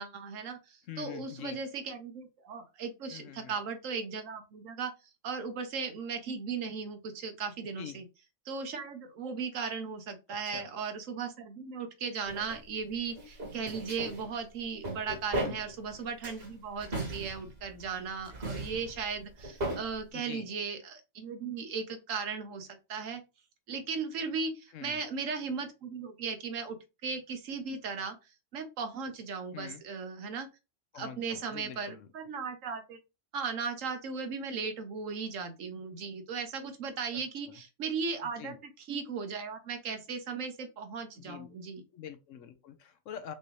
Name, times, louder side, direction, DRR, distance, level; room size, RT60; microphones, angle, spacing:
voice 1, 0.0-4.9 5.2-8.0 8.5-23.2 23.7-26.8 27.0-28.2 28.5-30.5 30.9-33.0 33.3-38.6 38.9-41.8, right 5 dB, 70° right, 1.2 m, -37 dB
voice 2, 0.8-1.6 3.1-3.5 7.8-8.0 10.4-10.7 15.3-15.6 20.1-20.5 24.7-25.0 29.5-29.8 30.9-32.1 37.1-37.6 38.2-38.6 41.2-41.5 41.9-43.3, left 9 dB, 70° left, 1.0 m, -45 dB
sound 1, 12.3-12.6 13.1-14.3 14.6-15.9 16.2-17.9 18.2-19.9, right 1 dB, 45° right, 2.2 m, -37 dB
5.2 x 2.7 x 3.1 m
omnidirectional pair, 1.4 m